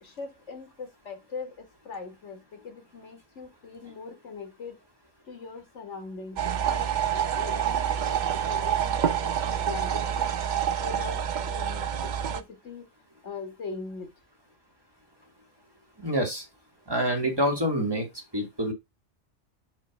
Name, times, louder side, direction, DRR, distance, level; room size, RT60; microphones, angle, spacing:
voice 1, 0.0-4.8 5.3-10.3 10.8-12.9 13.2-14.1, left 4 dB, 80° left, 1.9 m, -41 dB
sound 1, 6.4-12.4, right 9 dB, 55° right, 0.6 m, -27 dB
voice 2, 16.0-16.4 16.9-18.1 18.3-18.7, equal, 20° right, 1.9 m, -26 dB
6.4 x 3.1 x 5.9 m
omnidirectional pair, 1.2 m